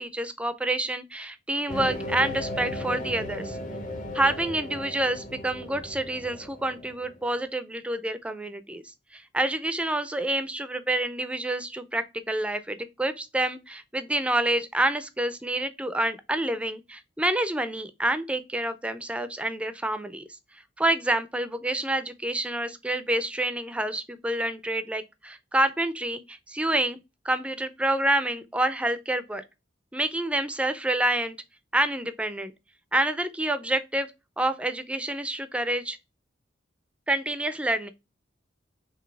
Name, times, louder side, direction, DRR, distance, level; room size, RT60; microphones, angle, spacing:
voice 1, 0.0-3.6 4.1-20.2 20.5-27.0 27.2-29.4 29.9-31.4 31.7-32.5 32.9-34.1 34.4-36.0 37.1-37.9, right 1 dB, 5° right, 0.3 m, -28 dB
sound 1, 1.7-7.2, left 1 dB, 45° left, 0.7 m, -36 dB
4.0 x 3.0 x 3.2 m
head